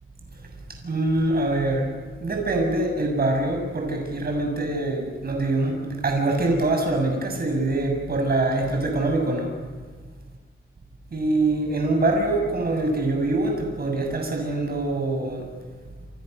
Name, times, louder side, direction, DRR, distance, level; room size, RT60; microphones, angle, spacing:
voice 1, 0.7-1.9 2.2-9.5 11.1-15.5, right 2 dB, 45° right, 3 dB, 6.8 m, -24 dB
30.0 x 27.5 x 6.7 m, 1.4 s
wide cardioid pair, 100°, 21 cm